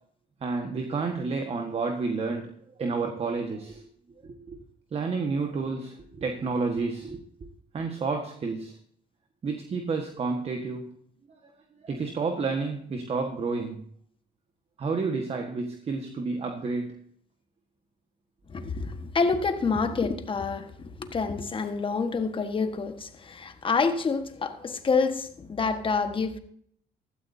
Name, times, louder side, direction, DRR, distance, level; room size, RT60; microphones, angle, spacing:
voice 1, 0.4-2.5 2.8-3.8 4.2-4.6 4.9-7.5 7.7-8.8 9.4-10.9 11.3-11.4 11.8-13.8 14.8-16.9, right 4 dB, 35° right, 1.5 m, -30 dB
voice 2, 18.5-20.7 21.0-26.4, left 4 dB, 30° left, 1.4 m, -27 dB
15.5 x 12.5 x 2.7 m
cardioid pair, 110°, 17 cm